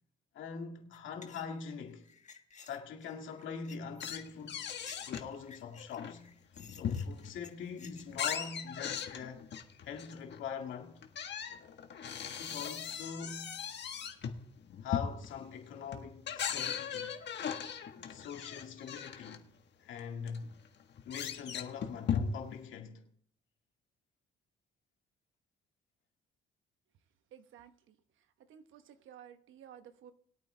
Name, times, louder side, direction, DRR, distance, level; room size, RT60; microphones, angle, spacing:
voice 1, 0.3-2.1 2.6-4.7 5.0-6.2 6.7-9.5 9.8-11.0 12.4-13.6 14.8-17.2 18.1-19.5 19.8-20.5 21.1-23.1, left 6 dB, 75° left, 2.0 m, -43 dB
sound 1, 0.9-8.4, left 6 dB, 35° left, 1.4 m, -55 dB
sound 2, 4.0-5.3 5.7-7.4 7.8-10.4 11.0-19.4 20.0-20.1 20.3-22.6, left 7 dB, 60° left, 1.5 m, -38 dB
voice 2, 27.3-28.0 28.5-30.1, right 9 dB, 80° right, 1.2 m, -54 dB
20.5 x 8.8 x 3.4 m
cardioid pair, 90°, 20 cm